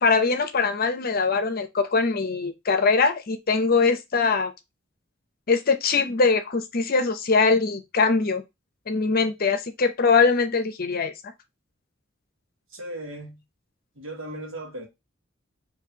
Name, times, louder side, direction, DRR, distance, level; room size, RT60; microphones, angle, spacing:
voice 1, 0.0-4.5 5.5-8.4 8.9-11.1, left 4 dB, 50° left, 0.7 m, -22 dB
voice 2, 12.7-13.4 13.9-14.9, right 1 dB, 80° right, 1.3 m, -37 dB
4.3 x 2.7 x 2.8 m
head